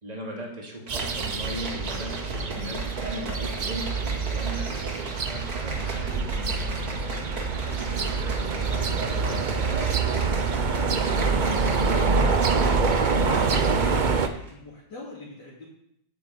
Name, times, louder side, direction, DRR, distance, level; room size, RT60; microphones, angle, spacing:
voice 1, 0.0-4.7 5.3-7.4 7.9-8.3, equal, 20° right, -2 dB, 2.8 m, -38 dB
sound 1, 0.9-14.3, right 4 dB, 45° right, 0.6 m, -26 dB
sound 2, 0.9-14.1 14.4-14.5, right 2 dB, 60° right, 2.7 m, -37 dB
voice 2, 7.7-15.7, left 2 dB, 90° left, -8 dB, 3.5 m, -43 dB
8.9 x 8.8 x 8.4 m, 0.77 s
omnidirectional pair, 1.8 m